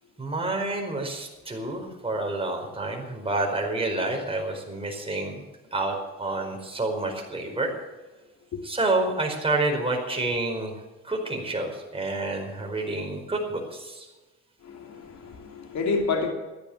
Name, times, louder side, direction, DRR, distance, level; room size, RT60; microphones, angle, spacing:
voice 1, 0.2-5.4 5.7-7.7 8.6-10.7 11.0-14.1, right 2 dB, 20° right, 1 dB, 4.9 m, -28 dB
voice 2, 14.6-16.3, left 4 dB, 65° left, 3 dB, 2.9 m, -29 dB
14.0 x 10.5 x 8.8 m, 1.2 s
cardioid pair, 90°, 30 cm